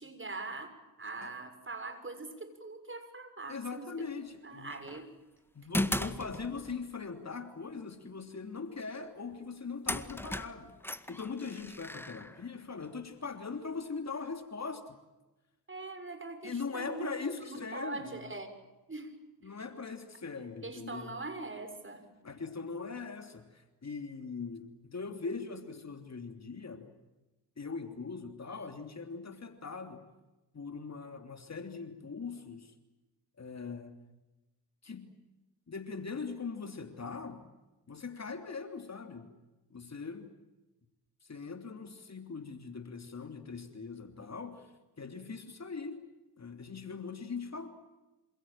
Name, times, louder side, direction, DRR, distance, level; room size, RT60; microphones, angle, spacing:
voice 1, 0.0-4.1 4.4-5.1 15.7-17.2 17.5-18.5 18.9-19.1 20.6-22.0, right 3 dB, 25° right, 9 dB, 6.5 m, -42 dB
voice 2, 3.5-4.9 5.5-10.8 11.1-15.0 16.4-18.2 19.4-21.1 22.2-26.9 27.6-30.0 30.5-32.7 33.4-34.0 34.8-35.1 35.7-37.4 37.9-39.3 39.7-40.3 41.2-46.0 46.4-47.7, left 4 dB, 35° left, 7 dB, 3.2 m, -41 dB
sound 1, 4.7-5.0 5.7-6.9 9.3-9.4 9.9-12.9, left 1 dB, 5° left, 1.9 m, -37 dB
27.5 x 27.0 x 7.5 m, 1.1 s
hypercardioid pair, 50°, 46 cm